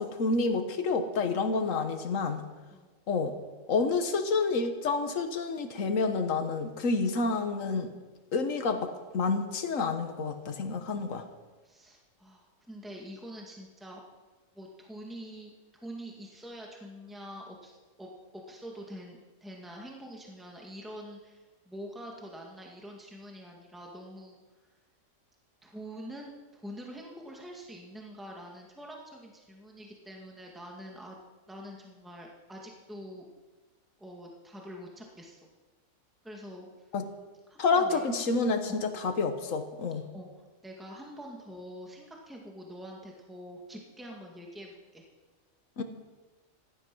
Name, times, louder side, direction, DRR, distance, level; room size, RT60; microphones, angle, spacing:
voice 1, 0.0-2.4 3.1-3.3 3.7-7.9 8.3-11.2 36.9-37.0 37.6-40.0 45.8-45.9, left 4 dB, 75° left, 7 dB, 1.6 m, -29 dB
voice 2, 11.6-14.0 14.5-24.4 25.6-31.2 31.5-33.2 34.0-35.5 36.2-36.7 37.5-38.0 38.7-38.8 40.1-40.3 40.6-45.0, equal, ahead, 0 dB, 2.1 m, -45 dB
15.5 x 12.5 x 6.2 m, 1.3 s
omnidirectional pair, 1.4 m